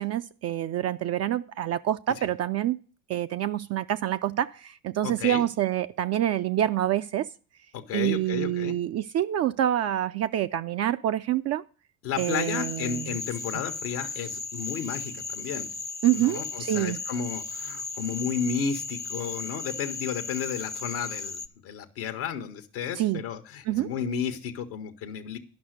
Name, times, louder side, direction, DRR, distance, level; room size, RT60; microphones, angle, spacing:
voice 1, 0.0-2.8 3.1-7.3 7.9-11.6 12.2-13.2 16.0-17.0 23.0-23.2 23.7-23.9, right 12 dB, 40° right, 0.4 m, -27 dB
voice 2, 5.0-5.4 7.7-8.8 12.0-15.7 16.1-25.4, left 7 dB, 75° left, 1.1 m, -33 dB
Cricket / Frog, 12.2-21.5, left 3 dB, 10° left, 0.6 m, -36 dB
11.5 x 5.6 x 6.4 m
hypercardioid pair, 70°, 40 cm